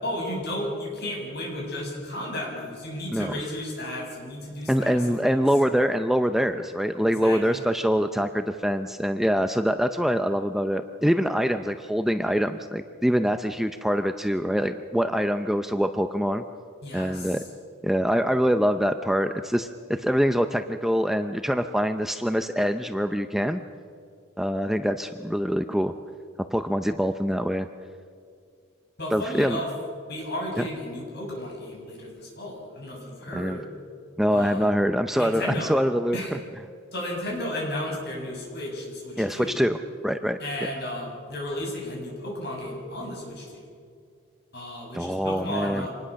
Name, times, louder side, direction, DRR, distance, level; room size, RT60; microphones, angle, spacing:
voice 1, 0.0-5.4 7.0-7.6 16.8-17.4 29.0-29.7 30.1-33.7 34.3-34.7 35.2-35.8 36.1-36.3 36.9-39.7 40.4-43.6 44.5-45.9, left 1 dB, 55° left, -2 dB, 7.4 m, -33 dB
voice 2, 4.7-16.4 16.9-17.4 17.8-23.6 24.4-25.9 26.5-27.7 29.1-29.6 33.3-33.6 34.2-36.2 39.2-39.8 40.0-40.7 44.9-45.9, equal, ahead, 8 dB, 0.5 m, -24 dB
26.0 x 20.0 x 6.4 m, 2.2 s
head